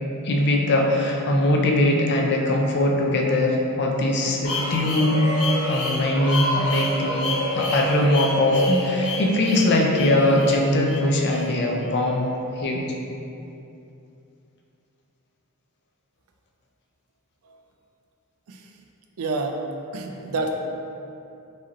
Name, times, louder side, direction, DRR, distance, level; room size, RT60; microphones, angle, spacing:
voice 1, 0.2-5.2 5.7-7.3 7.5-12.3 12.6-12.9, left 1 dB, 50° left, 0 dB, 0.5 m, -21 dB
sound 1, 4.4-12.3, left 1 dB, 70° left, 1.0 m, -29 dB
voice 2, 19.2-19.6 19.9-20.5, right 3 dB, 80° right, 3 dB, 0.4 m, -27 dB
4.6 x 2.8 x 3.0 m, 2.7 s
head